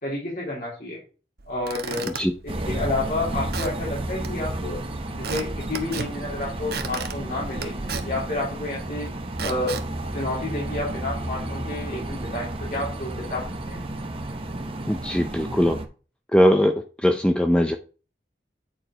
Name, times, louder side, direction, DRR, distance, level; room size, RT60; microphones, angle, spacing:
voice 1, 0.0-1.0 1.4-2.1 2.4-4.8 5.1-7.7 8.0-9.1 9.4-9.8 10.1-13.8, left 2 dB, 50° left, -6 dB, 3.3 m, -30 dB
Squeak / Wood, 1.4-11.0, right 5 dB, 65° right, 0.9 m, -38 dB
sound 1, 2.5-15.8, right 1 dB, 30° right, 0.9 m, -32 dB
voice 2, 14.9-15.8 16.3-17.8, equal, 5° left, 5 dB, 0.5 m, -20 dB
8.8 x 4.7 x 4.3 m, 0.36 s
head